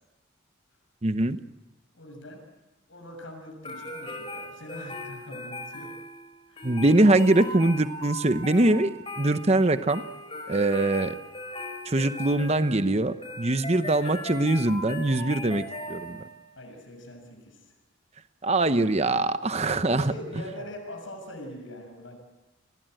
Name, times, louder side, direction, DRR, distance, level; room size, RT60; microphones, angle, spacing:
voice 1, 1.0-1.4 6.6-10.0 10.5-11.1 11.9-16.2 18.4-20.1, right 2 dB, 30° right, 11 dB, 0.9 m, -23 dB
voice 2, 1.9-2.4 2.9-5.9 6.5-6.7 16.0-17.7 19.6-22.2, equal, 70° left, 3 dB, 6.6 m, -42 dB
sound 1, 3.6-16.4, left 1 dB, 25° left, 4.2 m, -39 dB
29.0 x 20.5 x 7.8 m, 1.1 s
head